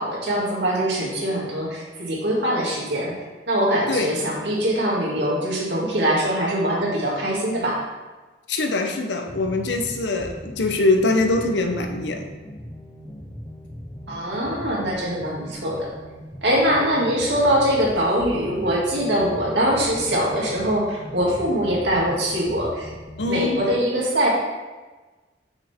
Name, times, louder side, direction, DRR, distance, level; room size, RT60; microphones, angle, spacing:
voice 1, 0.0-3.1 3.5-7.8 14.1-15.9 16.4-22.9 23.3-24.3, equal, 80° right, -4 dB, 2.1 m, -23 dB
voice 2, 8.5-12.2 23.2-23.6, left 2 dB, 85° left, 4 dB, 0.8 m, -23 dB
sound 1, 9.3-23.7, equal, 15° left, 0.6 m, -39 dB
5.9 x 5.7 x 4.3 m, 1.3 s
head